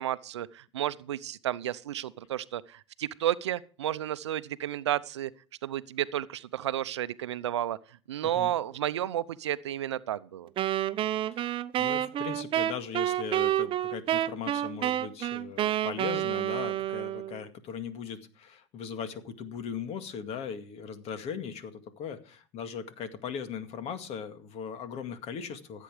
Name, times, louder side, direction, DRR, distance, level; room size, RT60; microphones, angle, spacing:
voice 1, 0.0-5.3 5.6-7.8 8.1-10.5, right 12 dB, 85° right, 0.7 m, -32 dB
Wind instrument woodwind instrument, 10.6-17.4, right 12 dB, 40° right, 0.7 m, -29 dB
voice 2, 11.8-25.8, left 7 dB, 50° left, 2.1 m, -39 dB
15.5 x 8.4 x 5.0 m
hypercardioid pair, 90°, 14 cm